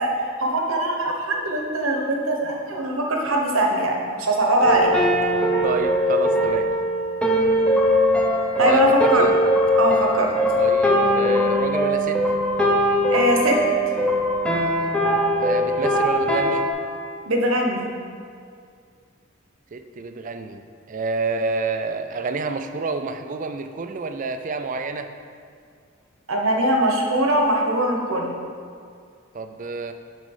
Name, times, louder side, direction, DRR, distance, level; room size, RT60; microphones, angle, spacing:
voice 1, 0.0-4.9 8.6-9.3 9.8-10.3 13.1-13.6 17.3-17.9 26.3-28.3, right 1 dB, 80° right, 1 dB, 1.1 m, -21 dB
sound 1, 4.6-16.7, equal, 5° left, 0.7 m, -20 dB
voice 2, 5.6-6.7 8.6-9.4 10.6-12.2 15.4-16.7 19.7-25.1 29.3-29.9, right 4 dB, 40° right, 8 dB, 0.4 m, -29 dB
6.0 x 5.3 x 5.5 m, 2.3 s
head